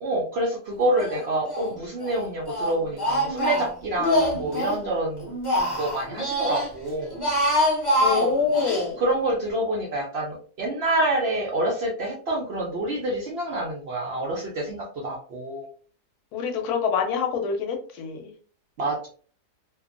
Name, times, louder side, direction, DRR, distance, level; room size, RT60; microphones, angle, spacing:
voice 1, 0.0-5.3 5.8-7.1 8.0-8.3 8.8-15.6 18.8-19.1, right 1 dB, 80° right, -2 dB, 0.5 m, -27 dB
Speech, 1.0-1.7 2.0-4.8 5.2-6.7 7.1-8.9, equal, 30° left, 0.4 m, -25 dB
voice 2, 8.0-9.0 16.3-18.3, left 6 dB, 75° left, 4 dB, 1.0 m, -26 dB
2.6 x 2.2 x 2.4 m, 0.43 s
omnidirectional pair, 1.7 m